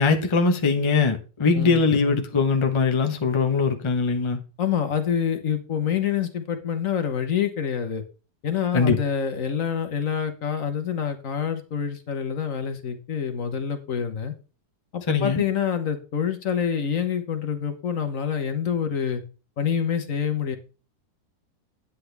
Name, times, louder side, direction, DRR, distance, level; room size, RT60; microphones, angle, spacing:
voice 1, 0.0-4.4 8.7-9.0 15.1-15.4, left 4 dB, 25° left, 6 dB, 0.8 m, -21 dB
voice 2, 1.5-1.9 4.6-8.0 8.4-14.3 14.9-19.2 19.6-20.6, left 8 dB, 55° left, 7 dB, 1.4 m, -26 dB
10.0 x 8.5 x 3.4 m, 0.34 s
omnidirectional pair, 1.7 m